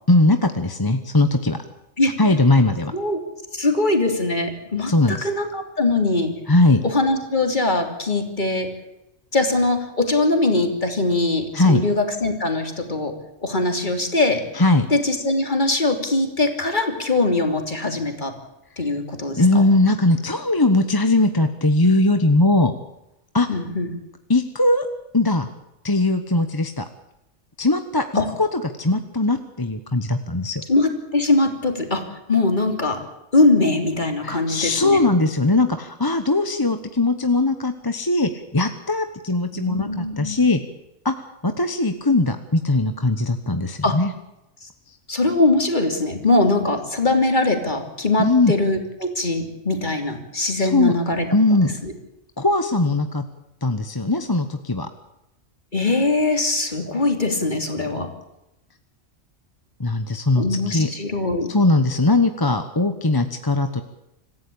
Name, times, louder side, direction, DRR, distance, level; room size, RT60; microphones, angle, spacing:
voice 1, 0.1-1.6 2.2-2.9 4.9-5.3 6.5-6.8 11.5-11.8 14.5-14.9 19.4-22.7 23.3-23.5 24.3-24.9 25.1-25.5 25.8-26.8 27.6-28.0 28.4-30.6 34.2-40.6 41.0-41.1 41.4-44.1 48.2-48.5 50.6-51.0 51.3-51.7 52.4-53.2 53.6-54.9 59.8-60.9 61.5-63.8, left 2 dB, 20° left, 8 dB, 1.1 m, -19 dB
voice 2, 3.5-6.3 6.8-8.7 9.3-13.1 13.4-14.4 14.9-18.3 18.8-19.4 23.5-23.9 28.1-28.3 30.7-32.0 32.3-33.0 33.3-35.0 39.5-40.4 43.8-44.0 45.1-51.3 51.6-51.9 55.7-58.1 60.3-61.5, left 2 dB, 40° left, 5 dB, 3.2 m, -21 dB
26.0 x 15.0 x 8.7 m, 0.89 s
omnidirectional pair, 1.3 m